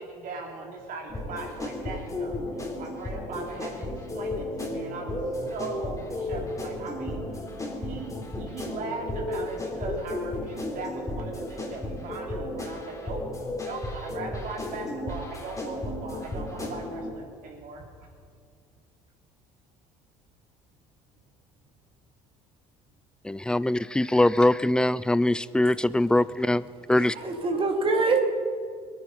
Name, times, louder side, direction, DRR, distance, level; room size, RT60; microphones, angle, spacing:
voice 1, 0.0-13.2 13.6-18.1 27.1-27.9, right 3 dB, 60° right, 0 dB, 3.8 m, -39 dB
sound 1, 1.1-17.1, left 1 dB, 20° left, 3.6 m, -34 dB
voice 2, 23.2-26.6 26.9-27.1, left 1 dB, 5° left, 18 dB, 0.5 m, -22 dB
voice 3, 27.0-28.2, right 3 dB, 35° right, 4 dB, 2.6 m, -25 dB
21.0 x 9.5 x 5.5 m, 2.2 s
hypercardioid pair, 70°, 16 cm